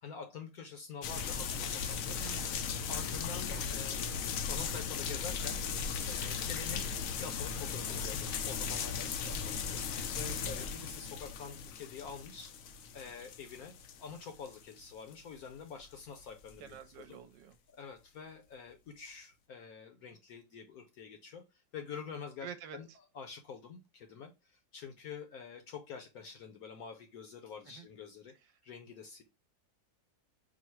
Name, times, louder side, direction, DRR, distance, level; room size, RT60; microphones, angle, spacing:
voice 1, 0.0-2.2 2.9-5.6 6.0-9.8 10.1-12.5 12.9-17.2 17.7-22.9 23.1-28.3 28.6-29.2, left 6 dB, 65° left, 1.0 m, -47 dB
sound 1, 1.0-14.8 15.1-15.2 15.8-16.2 16.5-16.6, left 6 dB, 85° left, 0.7 m, -37 dB
voice 2, 2.2-2.8 3.3-3.7 10.3-10.9 16.6-17.6 22.4-22.8 27.7-27.9, right 9 dB, 80° right, 1.2 m, -49 dB
4.6 x 2.0 x 4.4 m
omnidirectional pair, 2.0 m